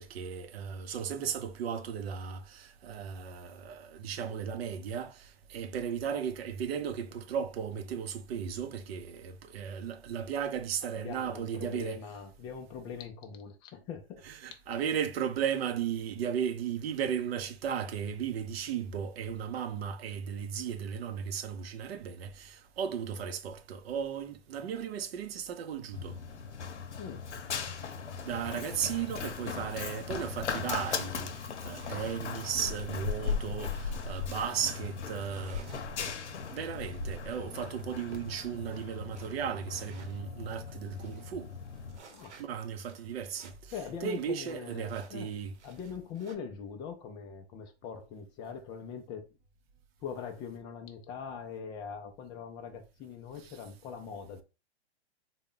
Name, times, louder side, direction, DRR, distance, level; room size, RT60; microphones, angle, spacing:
voice 1, 0.0-12.0 14.2-26.2 28.2-35.7 36.5-41.5 42.4-43.7 44.0-45.5 53.4-53.6, right 8 dB, 60° right, 0.7 m, -35 dB
voice 2, 10.9-14.2 27.0-27.3 42.1-42.4 43.7-45.3 45.6-49.3 50.0-54.4, left 6 dB, 15° left, 0.3 m, -42 dB
Run, 25.9-42.0, left 6 dB, 85° left, 0.7 m, -38 dB
sound 1, 30.0-40.3 40.7-40.8 40.9-43.8 44.1-44.2 44.9-46.3, right 3 dB, 85° right, 1.0 m, -52 dB
3.6 x 2.1 x 3.7 m
hypercardioid pair, 125°, 34 cm